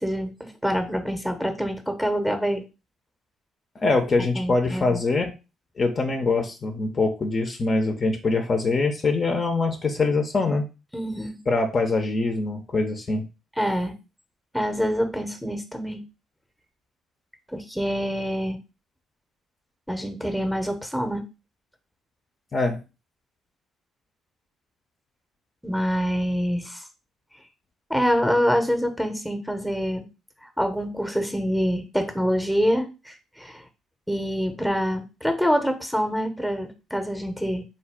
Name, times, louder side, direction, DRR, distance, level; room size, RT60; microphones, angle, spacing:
voice 1, 0.0-2.6 4.3-5.0 10.9-11.4 13.6-13.9 14.5-16.0 17.5-18.6 19.9-21.2 25.6-26.8 27.9-30.0 30.6-33.6 34.1-37.6, equal, ahead, 6 dB, 0.8 m, -26 dB
voice 2, 3.8-5.3 5.8-10.7 11.5-13.3 22.5-22.8, left 3 dB, 35° left, 4 dB, 0.6 m, -23 dB
3.9 x 2.3 x 3.5 m, 0.29 s
figure-of-eight pair, 45°, 0 cm